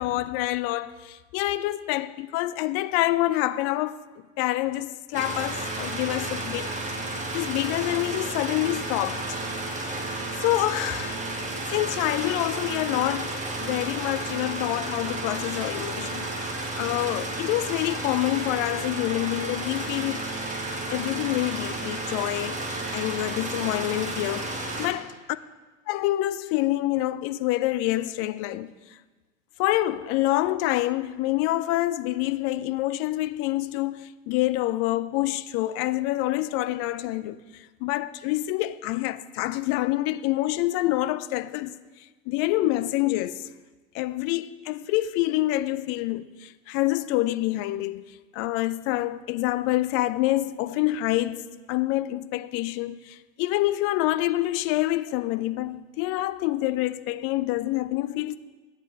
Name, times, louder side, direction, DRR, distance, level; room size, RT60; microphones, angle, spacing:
voice 1, 0.0-4.0 4.4-6.7 7.3-9.4 10.4-11.1 11.7-20.3 20.9-25.1 25.9-28.7 29.6-41.8 42.3-43.5 43.9-58.4, left 16 dB, 40° left, 0.4 m, -27 dB
sound 1, 5.1-24.9, right 2 dB, 20° right, 1.7 m, -32 dB
12.5 x 8.0 x 3.4 m
figure-of-eight pair, 80°, 40 cm